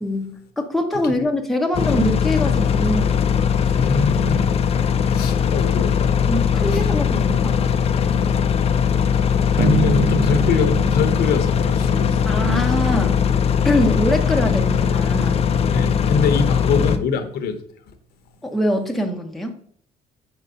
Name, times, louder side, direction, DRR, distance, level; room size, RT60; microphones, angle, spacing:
voice 1, 0.0-3.2 3.6-3.7 6.2-7.6 12.3-13.2 13.6-15.4 18.4-19.6, left 1 dB, ahead, 0.7 m, -23 dB
sound 1, 1.7-17.0, left 7 dB, 35° left, 0.4 m, -19 dB
voice 2, 3.7-4.5 5.1-6.1 6.7-6.8 9.6-12.3 15.7-17.6, left 5 dB, 70° left, 0.8 m, -23 dB
sound 2, 9.6-12.6, right 5 dB, 55° right, 0.4 m, -26 dB
4.4 x 3.9 x 5.5 m
cardioid pair, 110°, 17 cm